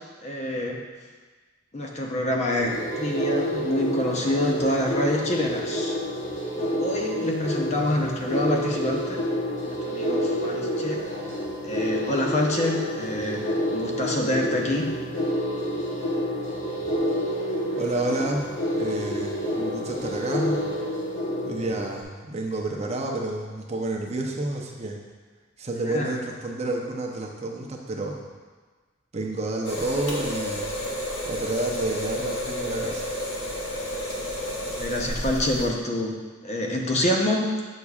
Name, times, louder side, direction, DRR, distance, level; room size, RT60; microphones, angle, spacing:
voice 1, 0.2-0.8 1.7-6.0 6.6-9.2 9.7-11.0 11.6-14.9 25.9-26.1 34.8-36.2 36.4-37.5, left 1 dB, 35° left, 0 dB, 0.7 m, -26 dB
sound 1, 2.6-22.0, equal, 70° left, 1.5 m, -29 dB
voice 2, 17.8-20.7 21.4-25.0 25.6-28.2 29.1-30.7 31.3-33.1, right 2 dB, 35° right, 0 dB, 0.7 m, -30 dB
sound 2, 29.6-35.7, equal, 85° left, 1.2 m, -31 dB
8.3 x 6.4 x 2.4 m, 1.4 s
head